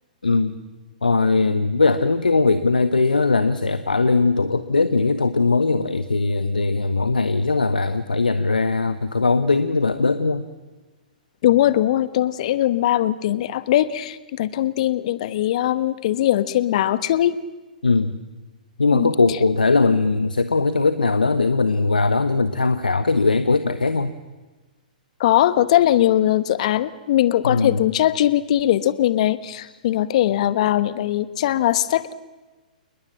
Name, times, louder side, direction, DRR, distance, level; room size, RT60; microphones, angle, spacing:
voice 1, 0.2-0.6 1.0-10.5 17.8-18.1 18.8-24.1 27.4-27.8, left 3 dB, 85° left, 12 dB, 1.2 m, -20 dB
voice 2, 11.4-17.4 18.9-19.1 25.2-32.1, left 12 dB, 50° left, 14 dB, 1.3 m, -20 dB
29.0 x 20.5 x 7.6 m, 1.2 s
figure-of-eight pair, 120°, 5 cm